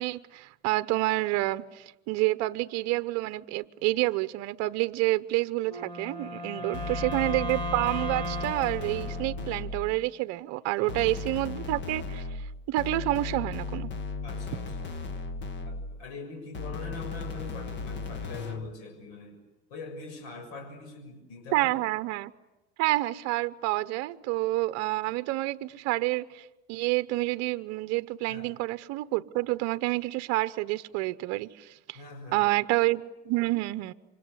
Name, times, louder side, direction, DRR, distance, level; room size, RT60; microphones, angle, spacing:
voice 1, 0.0-12.2 12.7-13.9 21.5-22.3 22.8-32.0 32.3-33.9, right 19 dB, 50° right, 1.0 m, -28 dB
Wind instrument woodwind instrument, 5.6-9.9, equal, 15° left, 2.7 m, -37 dB
voice 2, 6.5-6.9 10.8-11.2 14.2-14.9 15.6-19.4 19.7-21.8 28.3-28.5 31.9-32.5, left 3 dB, 70° left, 6.9 m, -43 dB
sound 1, 6.7-10.0 10.9-16.0 16.5-18.8, left 4 dB, 35° left, 1.7 m, -36 dB
28.5 x 25.5 x 8.1 m
supercardioid pair, 145°, 33 cm